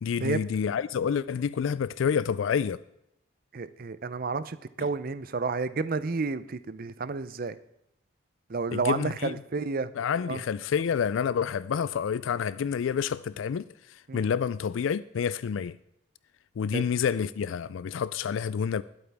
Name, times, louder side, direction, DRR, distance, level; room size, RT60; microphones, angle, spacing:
voice 1, 0.0-2.8 8.7-9.3 10.0-15.8 16.6-18.8, left 7 dB, 80° left, 0.3 m, -28 dB
voice 2, 3.5-7.6 8.5-9.9 10.3-10.4 14.1-14.3 16.7-16.8, right 4 dB, 45° right, 0.5 m, -31 dB
20.5 x 8.7 x 3.5 m
head